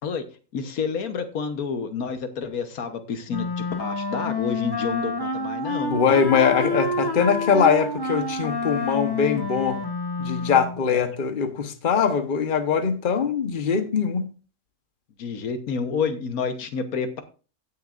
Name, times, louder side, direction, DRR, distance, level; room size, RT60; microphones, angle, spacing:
voice 1, 0.5-6.0 10.9-11.0 15.2-17.2, left 5 dB, 80° left, 8 dB, 1.5 m, -29 dB
Wind instrument woodwind instrument, 3.3-10.8, left 2 dB, 20° left, 0.9 m, -28 dB
voice 2, 5.9-9.8 10.2-14.3, left 6 dB, 40° left, 8 dB, 1.1 m, -22 dB
16.5 x 6.5 x 2.5 m, 0.35 s
omnidirectional pair, 1.5 m